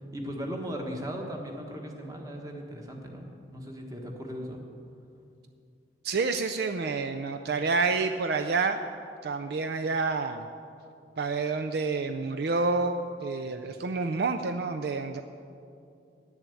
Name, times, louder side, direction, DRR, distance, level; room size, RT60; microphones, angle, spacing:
voice 1, 0.1-4.6 13.4-13.7, equal, 20° right, 1 dB, 1.3 m, -38 dB
voice 2, 6.0-8.8 9.2-10.5 11.2-15.2, right 4 dB, 60° right, 7 dB, 0.4 m, -28 dB
10.5 x 7.1 x 8.3 m, 2.5 s
head